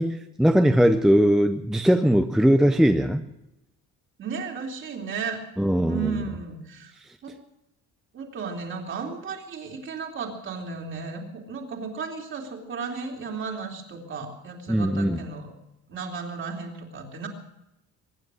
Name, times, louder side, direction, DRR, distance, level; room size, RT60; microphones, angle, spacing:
voice 1, 0.0-3.2 5.6-6.2 14.7-15.2, equal, ahead, 7 dB, 0.5 m, -20 dB
voice 2, 4.2-5.4 5.9-6.9 7.2-7.3 8.1-15.5 15.9-17.3, right 5 dB, 40° right, 2 dB, 3.0 m, -34 dB
23.0 x 10.0 x 6.2 m, 0.89 s
cardioid pair, 180°, 30 cm